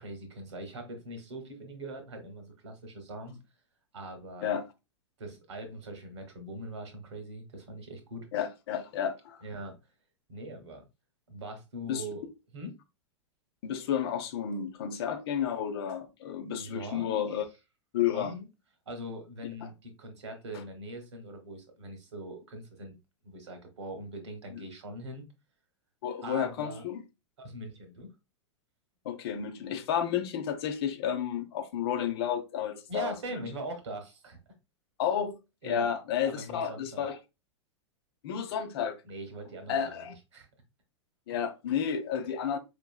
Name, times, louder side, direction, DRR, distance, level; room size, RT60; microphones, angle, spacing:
voice 1, 0.0-3.4 3.9-4.6 5.2-8.3 9.4-9.8 10.3-10.8 11.3-12.3 12.5-12.8 16.6-17.2 18.1-18.5 18.9-22.9 23.2-25.2 26.2-26.8 27.4-28.1 32.9-34.4 35.6-35.9 36.3-37.1 39.1-40.5, right 1 dB, 70° right, 1.3 m, -42 dB
voice 2, 8.3-9.4 11.9-12.0 13.6-17.4 17.9-18.3 19.6-19.7 24.5-24.6 26.0-27.0 29.0-33.5 35.0-35.4 35.6-37.2 38.2-38.9 39.7-40.1 41.3-42.6, left 8 dB, 55° left, 0.8 m, -31 dB
4.8 x 3.0 x 2.3 m
figure-of-eight pair, 95°, 16 cm